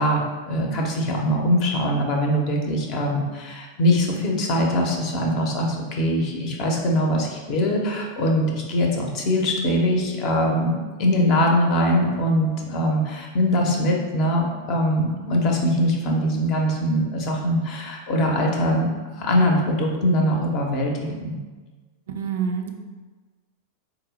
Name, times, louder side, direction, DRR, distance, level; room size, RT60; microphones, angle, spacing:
voice 1, 0.0-18.9 19.2-20.9 21.2-21.4, equal, 40° left, 0 dB, 0.7 m, -22 dB
voice 2, 22.1-22.7, right 6 dB, 60° right, 4 dB, 0.4 m, -27 dB
4.2 x 2.0 x 4.0 m, 1.3 s
figure-of-eight pair, 90°, 0 cm